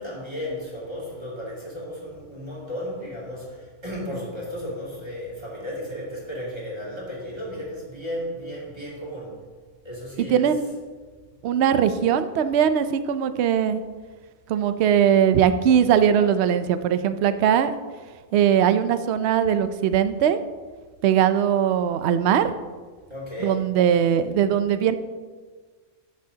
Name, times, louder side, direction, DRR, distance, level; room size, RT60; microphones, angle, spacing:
voice 1, 0.0-9.4 9.8-10.5 23.1-23.6, left 1 dB, 20° right, -5 dB, 2.5 m, -34 dB
voice 2, 10.3-10.6 11.4-13.8 14.5-17.7 18.3-20.4 21.0-22.5 23.4-25.0, right 9 dB, 60° right, 11 dB, 0.8 m, -20 dB
12.0 x 8.4 x 2.8 m, 1.4 s
omnidirectional pair, 1.5 m